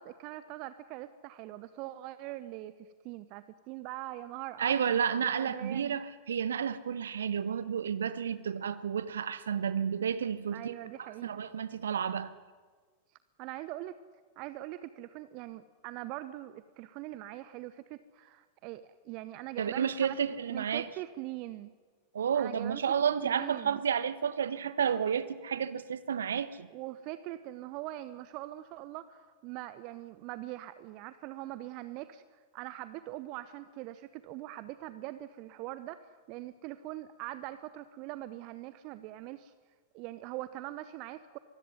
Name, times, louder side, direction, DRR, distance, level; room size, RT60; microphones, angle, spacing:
voice 1, 0.0-6.0 10.5-11.4 13.4-14.0 14.4-20.2 20.5-21.7 22.3-22.8 23.2-23.8 26.7-32.2 32.5-39.5 39.9-41.4, right 15 dB, 45° right, 14 dB, 0.9 m, -42 dB
voice 2, 4.6-10.7 11.0-12.3 19.6-20.9 22.1-26.7, right 7 dB, 65° right, 14 dB, 1.2 m, -31 dB
23.5 x 15.5 x 9.5 m, 1.4 s
figure-of-eight pair, 90°, 0 cm